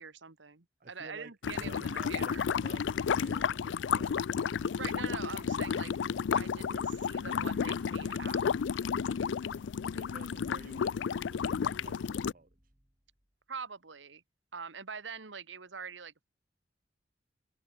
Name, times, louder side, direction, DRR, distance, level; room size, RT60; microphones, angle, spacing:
voice 1, 0.0-2.5 4.7-5.9 6.3-8.5 13.5-14.2 14.5-16.3, right 5 dB, 85° right, 1.5 m, -44 dB
voice 2, 0.8-2.8 3.1-4.3 9.1-9.4 9.9-12.5, right 2 dB, 50° right, 1.2 m, -52 dB
sound 1, 1.4-12.3, left 6 dB, 80° left, 0.4 m, -32 dB
sound 2, 4.3-13.3, equal, 20° right, 4.2 m, -63 dB
open air
head